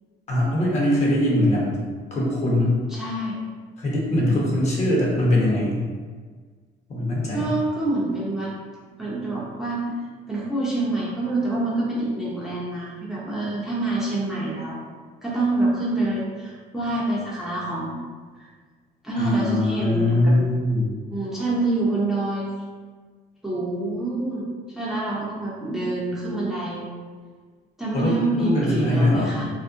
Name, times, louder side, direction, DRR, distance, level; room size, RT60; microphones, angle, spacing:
voice 1, 0.3-1.8 2.1-2.8 3.8-5.8 6.9-7.5 19.2-20.9 27.9-29.3, left 1 dB, 40° left, -4 dB, 0.9 m, -21 dB
voice 2, 2.9-3.4 7.3-8.5 9.0-9.9 10.3-14.8 15.2-17.9 19.0-20.4 21.1-22.5 23.4-26.9 27.8-29.5, right 2 dB, ahead, -7 dB, 0.6 m, -26 dB
2.5 x 2.0 x 3.6 m, 1.5 s
cardioid pair, 110°, 17 cm